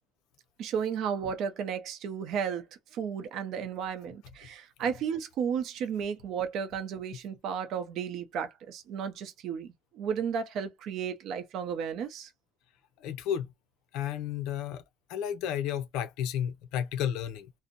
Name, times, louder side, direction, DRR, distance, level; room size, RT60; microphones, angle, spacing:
voice 1, 0.6-2.6 2.9-12.3, right 7 dB, 60° right, 0.6 m, -33 dB
voice 2, 13.0-13.5 13.9-14.8 15.1-17.5, left 9 dB, 75° left, 0.5 m, -32 dB
2.6 x 2.0 x 2.5 m
cardioid pair, 125°, 0 cm